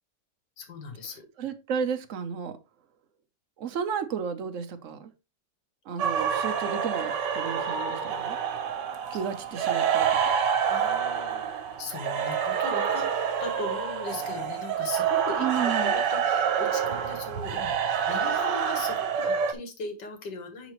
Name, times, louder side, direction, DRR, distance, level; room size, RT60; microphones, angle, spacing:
voice 1, 0.6-1.2 10.7-13.1 13.4-17.7 18.1-20.7, left 4 dB, 75° left, 2.1 m, -39 dB
voice 2, 1.4-2.6 3.6-5.1 5.9-8.4 9.1-10.1 15.4-15.9, right 7 dB, 55° right, 1.1 m, -32 dB
sound 1, 6.0-19.5, right 7 dB, 85° right, 1.5 m, -27 dB
10.0 x 4.1 x 3.1 m
omnidirectional pair, 1.9 m